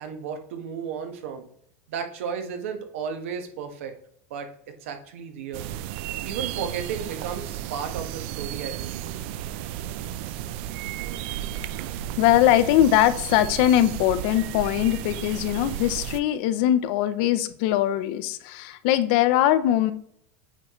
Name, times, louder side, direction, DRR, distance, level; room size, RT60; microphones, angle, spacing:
voice 1, 0.0-1.5 1.9-3.9 4.3-4.5 4.8-5.7 6.2-9.0, right 7 dB, 85° right, 6 dB, 1.3 m, -33 dB
sound 1, 5.5-16.2, right 12 dB, 60° right, 0.4 m, -33 dB
voice 2, 12.2-19.9, left 12 dB, 55° left, 13 dB, 0.6 m, -21 dB
8.6 x 4.6 x 3.1 m, 0.69 s
supercardioid pair, 160°, 7 cm